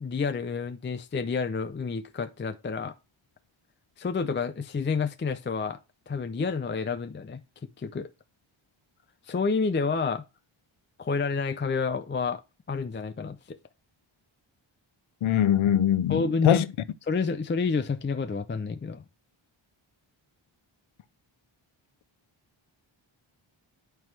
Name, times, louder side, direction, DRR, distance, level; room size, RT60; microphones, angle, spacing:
voice 1, 0.0-2.9 4.0-5.8 6.1-7.4 7.8-8.1 9.3-10.2 11.0-12.4 12.7-13.6 16.1-16.6 17.1-19.0, left 4 dB, 25° left, 0.4 m, -29 dB
voice 2, 15.2-16.7, left 11 dB, 75° left, 0.6 m, -22 dB
9.1 x 4.6 x 3.2 m
wide cardioid pair, 130°, 49 cm